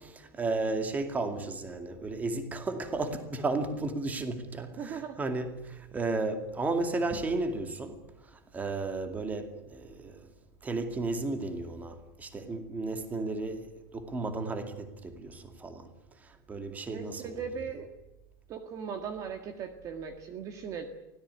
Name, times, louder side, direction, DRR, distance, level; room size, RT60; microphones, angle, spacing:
voice 1, 0.0-8.0 8.5-10.2 10.6-15.9 16.5-17.3, right 3 dB, 15° right, 2.4 m, -33 dB
voice 2, 4.8-5.2 16.9-17.9 18.5-20.9, right 7 dB, 30° right, 1.8 m, -38 dB
24.0 x 17.5 x 9.8 m
supercardioid pair, 170°, 12 cm